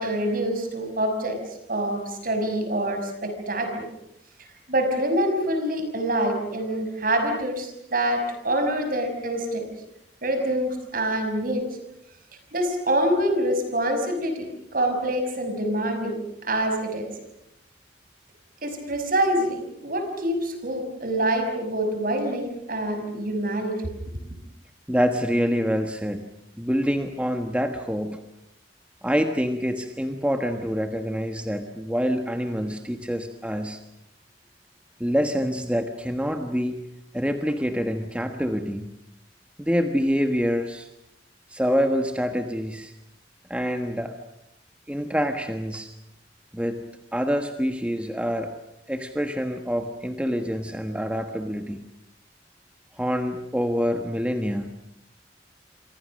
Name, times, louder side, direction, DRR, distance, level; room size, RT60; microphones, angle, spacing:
voice 1, 0.0-1.4 1.7-3.8 4.7-9.7 10.2-11.6 12.5-16.1 16.4-17.1 18.6-23.9, right 1 dB, 50° right, 6 dB, 5.8 m, -26 dB
voice 2, 24.9-26.3 26.6-28.2 29.0-33.8 35.0-36.8 37.1-38.9 39.6-40.9 41.5-42.9 43.5-44.2 44.9-45.9 46.5-46.8 47.1-48.5 48.9-51.8 53.0-54.7, equal, 5° right, 5 dB, 1.4 m, -26 dB
28.5 x 25.0 x 6.5 m, 0.82 s
head